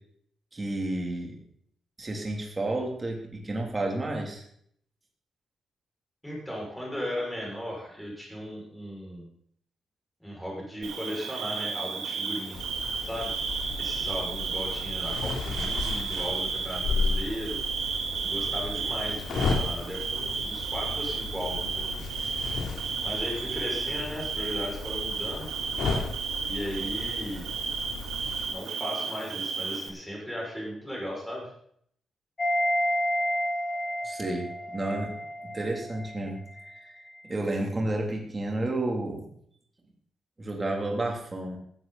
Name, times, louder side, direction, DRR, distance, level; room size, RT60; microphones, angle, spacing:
voice 1, 0.5-1.4 2.0-4.4 34.0-35.2 35.4-36.4 36.7-37.0 37.2-39.3 40.4-41.6, right 2 dB, 20° right, 1 dB, 3.4 m, -31 dB
voice 2, 6.2-9.3 10.2-12.6 13.0-13.4 13.8-17.6 18.2-22.0 23.0-25.5 26.5-27.5 28.5-31.5, equal, 5° left, -3 dB, 6.6 m, -36 dB
Bird / Cricket, 10.8-29.9, right 5 dB, 70° right, 3.8 m, -33 dB
sound 1, 12.5-28.5, left 4 dB, 85° left, 3.6 m, -34 dB
sound 2, 32.4-36.3 36.6-36.7, equal, 20° left, 2.9 m, -30 dB
15.5 x 14.5 x 4.3 m, 0.65 s
wide cardioid pair, 170°, 0 cm